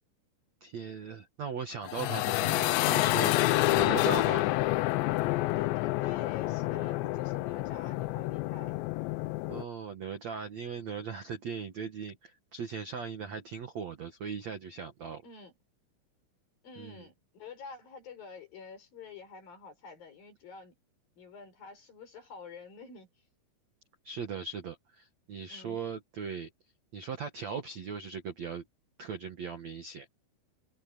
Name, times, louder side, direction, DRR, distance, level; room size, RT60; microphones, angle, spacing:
voice 1, 0.6-4.5 9.5-15.2 16.8-17.0 24.0-26.5 26.9-28.6 29.0-30.1, right 6 dB, 55° right, 2.0 m, -39 dB
sound 1, 1.8-9.6, left 17 dB, 80° left, 2.7 m, -28 dB
voice 2, 5.6-8.8 15.2-15.5 16.6-20.7 21.2-23.1 25.5-25.8, left 5 dB, 45° left, 7.1 m, -48 dB
omnidirectional pair, 5.6 m